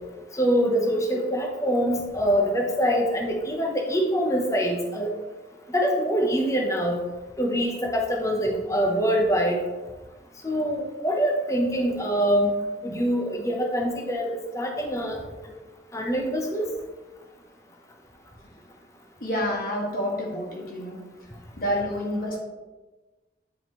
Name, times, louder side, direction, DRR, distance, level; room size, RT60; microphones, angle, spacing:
voice 1, 0.3-5.1 5.7-7.0 7.4-9.5 10.4-12.5 12.8-14.3 14.5-15.2 15.9-16.6, equal, 15° left, 0 dB, 0.8 m, -24 dB
voice 2, 19.2-21.0 21.6-22.4, equal, 50° left, -3 dB, 1.7 m, -28 dB
9.2 x 4.9 x 3.0 m, 1.2 s
head